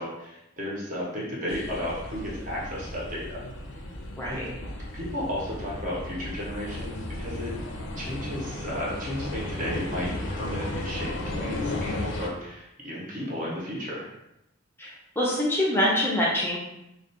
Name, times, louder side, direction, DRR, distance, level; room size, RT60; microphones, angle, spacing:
voice 1, 0.0-3.4 4.3-4.4 4.9-7.5 8.0-14.1, equal, 45° right, -5 dB, 0.7 m, -33 dB
sound 1, 1.5-12.3, left 2 dB, 85° left, 0.4 m, -35 dB
voice 2, 4.2-4.5 14.8-16.6, left 1 dB, 10° left, -5 dB, 0.4 m, -25 dB
2.2 x 2.1 x 2.8 m, 0.85 s
head